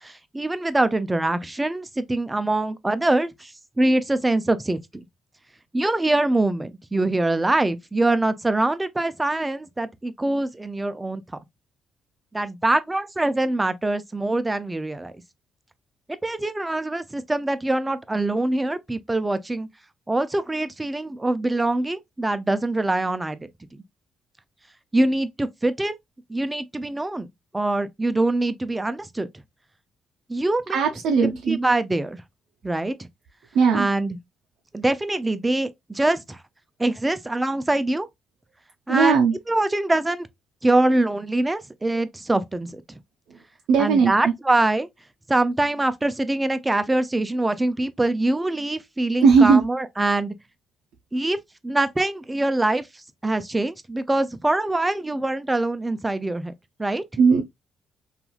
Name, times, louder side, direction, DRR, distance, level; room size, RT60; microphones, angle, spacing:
voice 1, 0.0-3.5 3.8-4.8 5.7-11.2 12.3-15.1 16.2-19.7 20.1-23.5 24.9-26.0 26.3-27.3 27.5-29.3 30.3-30.8 31.2-32.2 32.6-33.1 33.7-34.2 34.7-36.4 36.8-38.1 38.9-39.2 39.5-40.3 40.6-42.8 43.8-44.9 45.3-50.3 51.1-51.4 51.6-52.9 53.2-56.5 56.8-57.0, right 2 dB, 15° right, 0.3 m, -24 dB
voice 2, 30.7-31.6 33.5-33.9 38.9-39.3 43.7-44.3 49.2-49.6 57.2-57.4, right 5 dB, 85° right, 0.4 m, -17 dB
3.0 x 2.4 x 2.2 m
cardioid pair, 90°, 0 cm